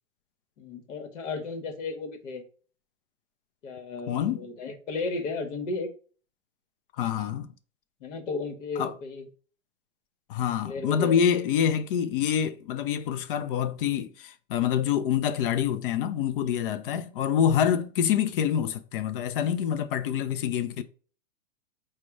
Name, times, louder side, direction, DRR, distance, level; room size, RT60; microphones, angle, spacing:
voice 1, 0.6-2.4 3.6-5.9 8.0-9.3 10.6-11.2 16.8-17.1, left 3 dB, 60° left, 1.1 m, -34 dB
voice 2, 4.1-4.4 7.0-7.5 8.8-8.9 10.3-20.8, left 9 dB, 45° left, 0.5 m, -26 dB
4.7 x 2.2 x 4.6 m
hypercardioid pair, 115°, 40 cm